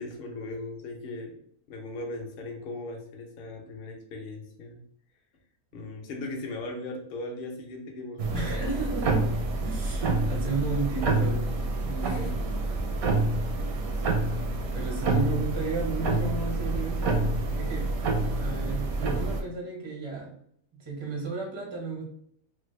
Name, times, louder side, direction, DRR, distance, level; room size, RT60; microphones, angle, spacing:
voice 1, 0.0-1.4 1.7-4.8 5.7-8.5 12.0-12.4 13.9-14.5, left 2 dB, 55° left, 2 dB, 0.6 m, -38 dB
sound 1, 8.2-19.4, right 2 dB, 80° right, 1.1 m, -28 dB
voice 2, 8.3-11.4 11.8-12.3 12.7-12.8 14.7-18.0 18.4-20.4 20.7-22.0, right 4 dB, 35° right, -2 dB, 0.4 m, -34 dB
3.3 x 2.1 x 3.1 m, 0.69 s
omnidirectional pair, 1.5 m